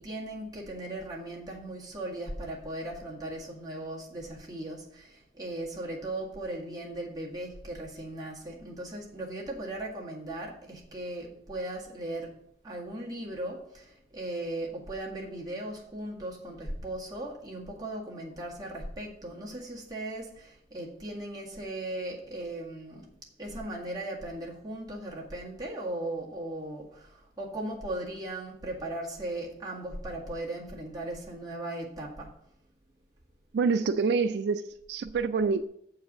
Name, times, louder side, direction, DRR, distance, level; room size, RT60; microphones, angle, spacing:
voice 1, 0.0-12.4 12.6-23.1 23.4-32.3, right 1 dB, 20° right, 1.9 m, -38 dB
voice 2, 33.5-34.6 34.9-35.7, right 4 dB, 70° right, 0.3 m, -26 dB
7.5 x 4.8 x 7.3 m
head